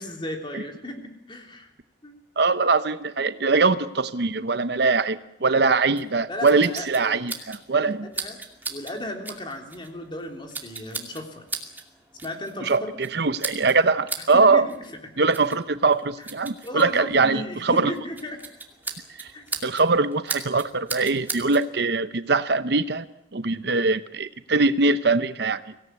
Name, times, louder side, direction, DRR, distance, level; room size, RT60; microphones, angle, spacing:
voice 1, 0.0-1.7 2.0-2.2 6.3-7.2 7.7-8.4 8.7-11.4 12.2-12.9 14.3-15.0 16.2-16.3 16.6-18.4 19.3-19.4, left 1 dB, 25° left, 3 dB, 3.5 m, -35 dB
voice 2, 2.4-8.1 12.7-12.8 13.1-14.7 15.2-17.9 19.2-19.3 19.6-23.1 23.3-25.6, right 3 dB, 60° right, 13 dB, 0.8 m, -22 dB
sound 1, 6.0-21.7, right 3 dB, 10° right, 2.4 m, -38 dB
24.5 x 17.5 x 9.5 m, 0.89 s
head